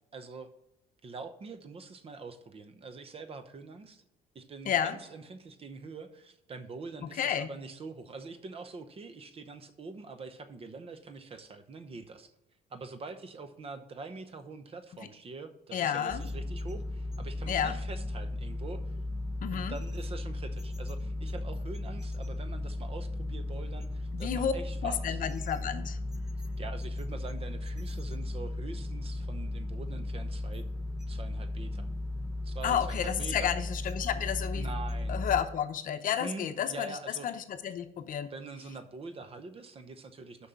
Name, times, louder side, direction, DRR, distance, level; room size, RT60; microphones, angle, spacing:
voice 1, 0.1-0.5 1.0-4.0 4.3-12.3 12.7-19.0 19.5-25.2 26.6-30.7 31.1-31.9 32.4-33.5 34.5-35.2 36.2-37.4 38.3-40.5, right 4 dB, 35° right, 10 dB, 0.8 m, -44 dB
voice 2, 7.2-7.5 15.7-16.2 17.5-17.8 19.4-19.7 24.1-24.5 24.8-26.0 32.6-34.7 35.1-37.0 37.2-38.3, left 9 dB, 55° left, 9 dB, 0.7 m, -31 dB
sound 1, 16.1-35.4, left 2 dB, 5° right, 1.0 m, -36 dB
6.4 x 5.5 x 7.1 m, 0.85 s
cardioid pair, 110°, 17 cm